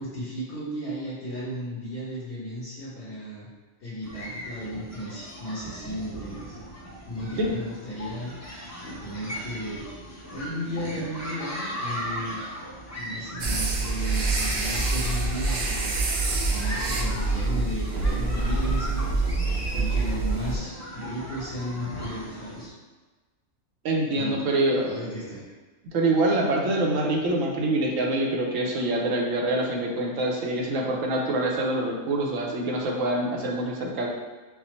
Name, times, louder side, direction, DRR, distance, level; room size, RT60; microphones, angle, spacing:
voice 1, 0.0-3.5 3.8-6.6 7.1-9.9 10.3-12.4 12.9-22.7 24.1-24.3 24.7-25.4, equal, 60° left, -13 dB, 1.6 m, -35 dB
sound 1, 4.0-22.7, equal, 20° left, 0.4 m, -38 dB
sound 2, 13.4-20.6, right 3 dB, 55° right, 0.5 m, -26 dB
voice 2, 23.8-24.9 25.9-34.1, right 2 dB, 85° right, -1 dB, 1.1 m, -25 dB
5.6 x 2.0 x 3.1 m, 1.3 s
omnidirectional pair, 1.3 m